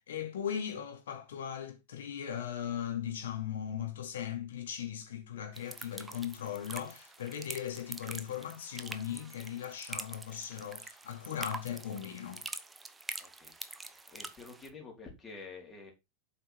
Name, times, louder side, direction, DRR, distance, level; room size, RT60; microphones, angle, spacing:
voice 1, 0.0-12.4, left 9 dB, 60° left, 2.5 m, -38 dB
sound 1, 5.5-14.7, right 3 dB, 10° right, 0.9 m, -45 dB
voice 2, 13.2-15.9, left 4 dB, 20° left, 4.0 m, -49 dB
7.9 x 5.7 x 4.6 m
figure-of-eight pair, 90°, 0 cm